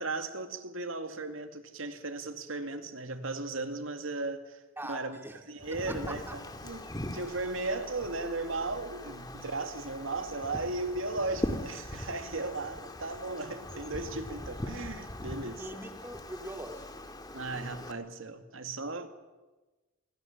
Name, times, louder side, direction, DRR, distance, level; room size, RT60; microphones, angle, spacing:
voice 1, 0.0-15.7 17.3-19.1, right 2 dB, 80° right, 2.3 m, -36 dB
voice 2, 4.8-5.4 5.9-6.4 15.6-16.9, right 1 dB, 10° right, 2.6 m, -41 dB
Wind, 5.6-17.9, left 1 dB, 20° left, 2.0 m, -41 dB
26.0 x 24.5 x 7.3 m
head